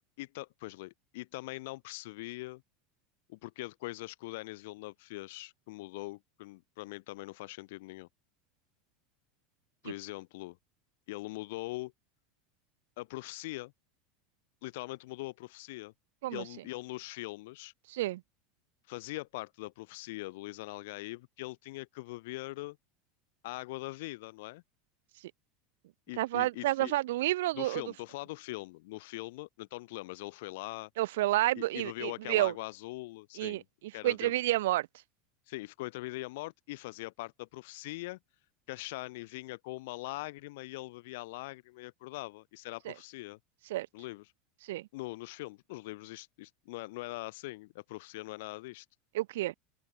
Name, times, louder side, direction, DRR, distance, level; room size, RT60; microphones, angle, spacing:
voice 1, 0.2-2.6 3.3-8.1 9.8-10.6 11.1-11.9 13.0-13.7 14.6-15.9 16.3-17.7 18.9-22.8 23.4-24.6 26.1-26.9 27.5-30.9 31.6-33.6 33.9-34.3 35.5-38.2 38.7-43.4 43.9-44.2 44.9-48.9, left 21 dB, 65° left, 1.9 m, -42 dB
voice 2, 17.9-18.2 26.2-27.8 31.0-32.5 33.4-33.6 34.0-34.9 42.9-43.0 43.7-43.9 44.6-44.9 49.1-49.5, right 16 dB, 85° right, 0.7 m, -29 dB
open air
supercardioid pair, 170°, 0 cm